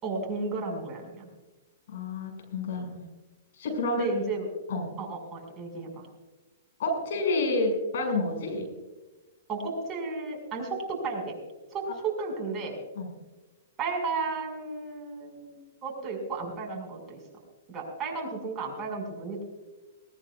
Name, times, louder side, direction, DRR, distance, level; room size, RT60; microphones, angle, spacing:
voice 1, 0.0-1.3 3.9-4.5 5.0-6.1 9.5-10.8 11.0-11.4 11.7-12.8 13.8-17.2 17.7-19.4, right 4 dB, 25° right, 1 dB, 5.3 m, -33 dB
voice 2, 1.9-3.0 3.6-4.1 4.7-4.9 6.8-8.7 12.9-13.1, left 2 dB, 65° left, 4 dB, 6.0 m, -29 dB
19.0 x 19.0 x 2.4 m, 1.2 s
hypercardioid pair, 125°, 0 cm